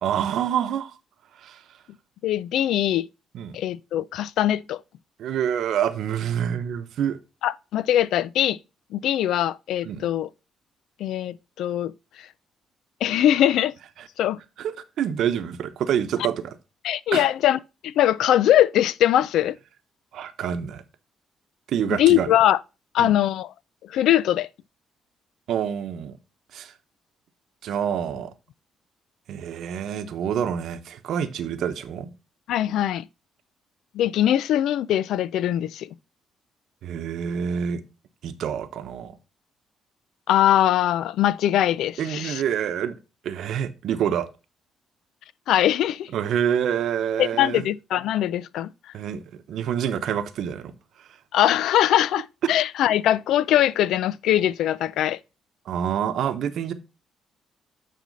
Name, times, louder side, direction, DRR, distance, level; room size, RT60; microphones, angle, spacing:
voice 1, 0.0-0.9 1.4-1.6 3.3-3.6 5.2-7.2 9.8-10.1 14.0-14.1 14.6-16.5 17.1-17.2 20.1-20.8 21.7-22.3 23.0-23.1 25.5-26.2 26.5-26.7 27.6-28.3 29.3-32.1 36.8-37.8 38.2-39.1 42.0-43.0 43.2-44.3 46.1-47.7 48.9-50.7 51.0-51.1 55.7-56.7, right 9 dB, 75° right, 0.9 m, -27 dB
voice 2, 2.2-3.1 3.5-4.8 7.4-8.6 8.9-10.3 11.0-11.9 13.0-13.7 14.2-14.4 16.8-19.5 21.9-22.6 22.9-23.5 23.9-24.5 32.5-33.0 33.9-35.9 40.3-42.4 45.5-46.1 47.2-48.7 51.3-55.2, left 12 dB, 80° left, 0.3 m, -21 dB
9.3 x 4.2 x 4.0 m
cardioid pair, 90°, 0 cm